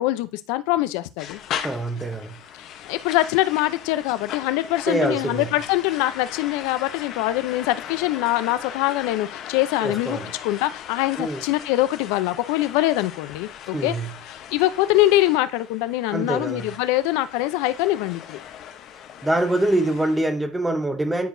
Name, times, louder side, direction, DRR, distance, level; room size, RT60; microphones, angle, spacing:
voice 1, 0.0-1.4 2.9-10.2 10.4-13.9 14.5-18.4, left 16 dB, 80° left, 0.6 m, -23 dB
sound 1, 1.2-20.3, left 9 dB, 55° left, 0.9 m, -38 dB
voice 2, 1.6-2.5 4.9-5.5 9.8-10.3 11.2-11.4 13.7-14.2 16.1-16.8 18.9-21.3, right 1 dB, 10° right, 0.9 m, -25 dB
10.0 x 4.7 x 2.7 m
supercardioid pair, 110°, 0 cm